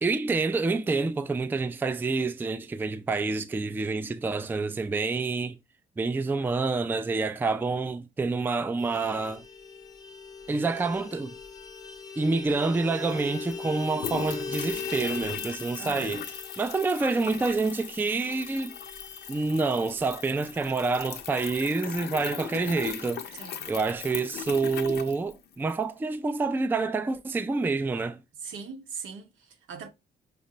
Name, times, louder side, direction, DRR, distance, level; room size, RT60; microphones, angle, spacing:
voice 1, 0.0-5.6 6.0-9.4 10.5-11.3 12.2-18.7 19.3-28.2, right 3 dB, 10° right, 0.3 m, -28 dB
Vehicle horn car horn honking, 8.8-22.7 23.0-23.1 23.4-23.6 23.8-24.5, left 5 dB, 20° left, 0.7 m, -41 dB
sound 1, 13.0-25.8, left 9 dB, 60° left, 0.5 m, -39 dB
voice 2, 15.8-16.2 23.4-23.7 28.4-29.9, right 5 dB, 75° right, 0.8 m, -41 dB
5.0 x 2.1 x 2.7 m
cardioid pair, 90°, 20 cm